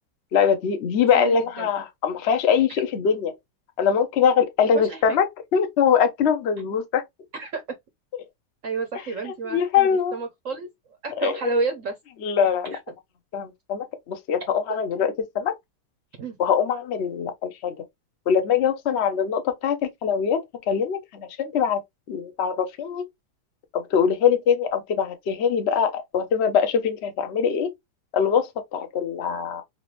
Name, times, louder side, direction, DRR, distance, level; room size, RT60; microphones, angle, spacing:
voice 1, 0.3-3.3 3.8-5.3 5.5-7.0 9.2-10.2 11.2-11.5 12.2-12.8 13.3-15.5 16.4-17.8 18.3-21.8 22.1-23.0 23.7-27.7 28.1-29.6, left 7 dB, 75° left, 0.6 m, -23 dB
voice 2, 1.1-1.7 4.7-5.2 7.3-7.6 8.6-10.7 11.0-11.9 14.7-14.8 16.2-16.4, right 4 dB, 60° right, 0.8 m, -30 dB
4.2 x 2.7 x 2.9 m
omnidirectional pair, 2.2 m